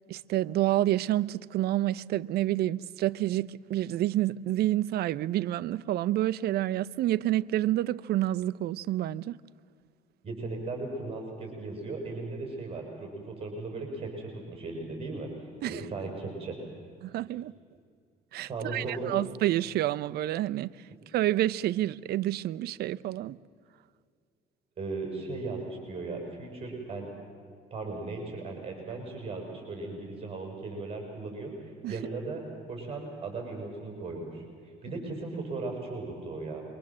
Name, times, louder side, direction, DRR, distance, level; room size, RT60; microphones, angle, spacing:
voice 1, 0.1-9.4 15.6-15.8 17.0-17.5 18.3-20.7 21.1-23.4 31.8-32.0, right 14 dB, 70° right, 0.7 m, -28 dB
voice 2, 10.2-15.3 15.6-16.6 18.4-19.1 24.8-27.1 27.7-31.5 31.9-32.4 32.7-34.4 34.8-36.7, right 3 dB, 35° right, 6.8 m, -37 dB
27.0 x 24.0 x 7.5 m
cardioid pair, 110°, 17 cm